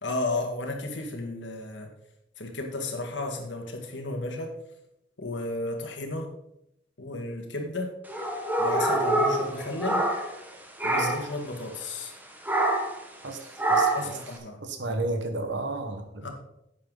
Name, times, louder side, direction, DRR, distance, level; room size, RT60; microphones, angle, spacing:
voice 1, 0.0-1.9 2.4-4.5 5.2-6.3 7.0-7.9 8.6-10.1 10.8-12.1 13.9-14.6 16.2-16.3, left 2 dB, 80° left, 3 dB, 2.1 m, -33 dB
sound 1, 8.1-10.5 10.8-11.3 12.4-13.0 13.6-14.2, right 1 dB, 10° right, 1.5 m, -25 dB
voice 2, 13.2-14.2 14.6-16.3, right 2 dB, 80° right, 6 dB, 1.6 m, -33 dB
11.0 x 8.4 x 4.1 m, 0.80 s
head